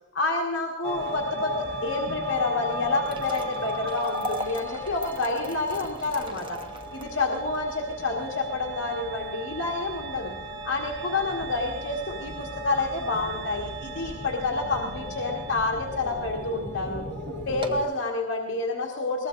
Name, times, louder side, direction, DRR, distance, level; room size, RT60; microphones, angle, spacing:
voice 1, 0.1-6.6 6.9-10.3 10.6-17.0 17.5-19.3, left 3 dB, 70° left, -2 dB, 1.8 m, -28 dB
sound 1, 0.8-17.8, equal, 60° right, 1.8 m, -36 dB
sound 2, 2.8-15.1 15.6-15.7 16.4-16.6 16.9-17.0 17.4-18.0, right 1 dB, 25° right, 1.1 m, -41 dB
22.5 x 19.5 x 2.7 m, 1.1 s
head